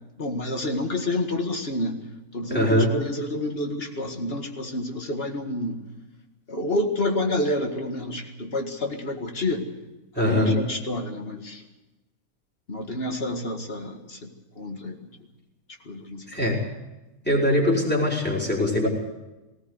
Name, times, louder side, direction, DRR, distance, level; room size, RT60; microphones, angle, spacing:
voice 1, 0.2-2.0 2.3-5.8 6.5-9.6 10.2-11.6 12.7-14.3 14.6-15.0 15.9-16.2, left 1 dB, 40° left, 4 dB, 2.1 m, -29 dB
voice 2, 2.5-3.0 10.1-10.6 16.3-16.6 17.2-18.9, left 1 dB, 5° left, -2 dB, 4.7 m, -22 dB
19.0 x 17.5 x 8.1 m, 1.0 s
omnidirectional pair, 1.5 m